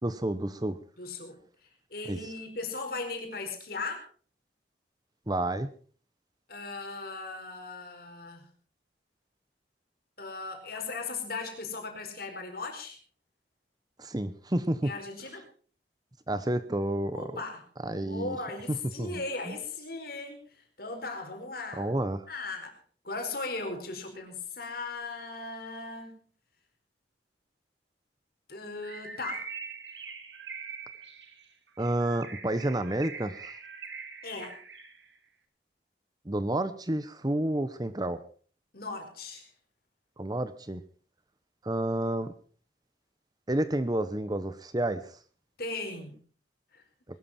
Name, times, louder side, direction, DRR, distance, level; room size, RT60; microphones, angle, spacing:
voice 1, 0.0-0.8 2.1-2.2 5.3-5.7 14.0-14.9 16.3-17.4 17.8-18.4 18.7-19.6 21.7-22.2 31.8-33.5 36.2-38.2 40.2-40.8 41.6-42.3 43.5-45.1, right 1 dB, 20° right, 13 dB, 0.9 m, -30 dB
voice 2, 1.0-1.4 1.9-4.0 6.5-8.5 10.2-13.0 14.8-15.5 17.1-21.9 22.3-26.2 28.5-29.5 34.2-34.6 38.7-39.5 45.6-46.2 46.7-46.8, left 3 dB, 55° left, 4 dB, 4.6 m, -38 dB
Bird, 28.8-35.1, right 5 dB, 85° right, 2.6 m, -43 dB
21.0 x 13.0 x 4.3 m, 0.42 s
head